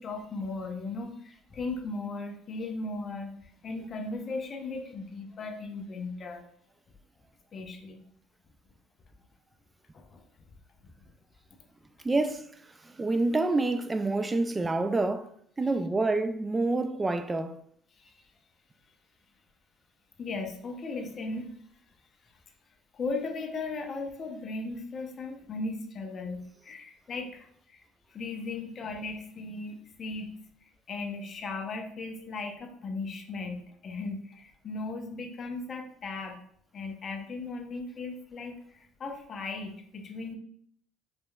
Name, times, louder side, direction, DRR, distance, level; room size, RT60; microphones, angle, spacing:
voice 1, 0.0-6.5 7.5-8.0 9.9-10.2 10.8-10.9 18.0-18.2 20.2-21.5 22.9-27.8 28.1-30.3 30.9-36.4 36.7-40.4, left 3 dB, 35° left, 0.7 m, -37 dB
voice 2, 12.0-12.5 12.8-15.3 15.6-17.6, right 2 dB, 15° right, 0.3 m, -27 dB
5.0 x 3.2 x 2.3 m
cardioid pair, 120°, 0 cm